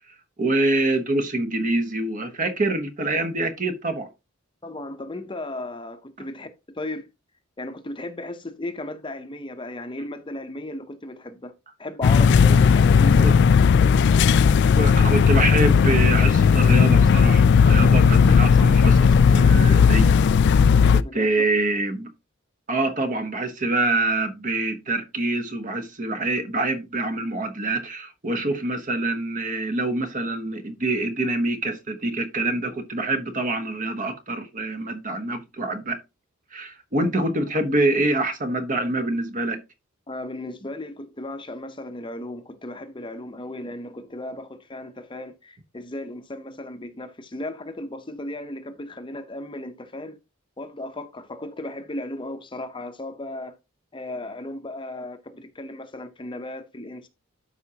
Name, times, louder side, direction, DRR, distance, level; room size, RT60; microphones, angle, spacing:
voice 1, 0.4-4.1 13.2-13.3 14.7-20.2 20.9-22.1 22.7-36.0 36.5-39.6, right 2 dB, 40° right, 1.0 m, -25 dB
voice 2, 4.6-7.1 7.6-11.5 11.8-13.4 13.8-14.0 21.0-21.5 40.1-50.2 50.6-53.6 53.9-57.1, left 1 dB, 25° left, 0.7 m, -35 dB
sound 1, 12.0-21.0, left 6 dB, 55° left, 0.3 m, -16 dB
12.5 x 4.9 x 2.8 m
head